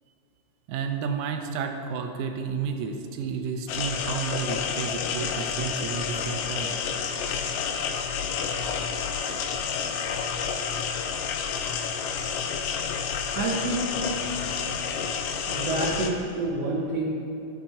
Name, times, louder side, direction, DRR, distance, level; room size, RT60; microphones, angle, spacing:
voice 1, 0.7-6.8 7.1-7.2 7.7-7.8 8.2-8.4 8.7-8.9 9.3-9.5 9.8-10.0 14.9-15.0, right 6 dB, 80° right, 4 dB, 2.2 m, -32 dB
sound 1, 3.7-16.1, left 6 dB, 80° left, 2.3 m, -29 dB
voice 2, 13.3-14.0 15.5-17.0, right 2 dB, 65° right, -3 dB, 1.7 m, -28 dB
12.0 x 5.9 x 5.7 m, 3.0 s
omnidirectional pair, 3.9 m